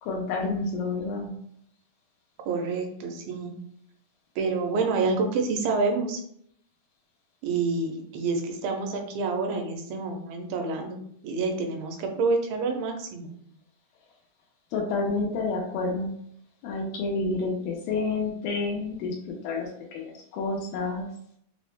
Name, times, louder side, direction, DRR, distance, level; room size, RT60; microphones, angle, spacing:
voice 1, 0.0-1.3 14.7-16.1 16.6-19.2 19.4-21.1, left 3 dB, 85° left, -1 dB, 2.4 m, -29 dB
voice 2, 2.5-3.5 4.4-6.2 7.4-11.0 11.2-13.3, right 4 dB, 90° right, 3 dB, 2.4 m, -28 dB
5.7 x 2.0 x 3.1 m, 0.68 s
omnidirectional pair, 4.1 m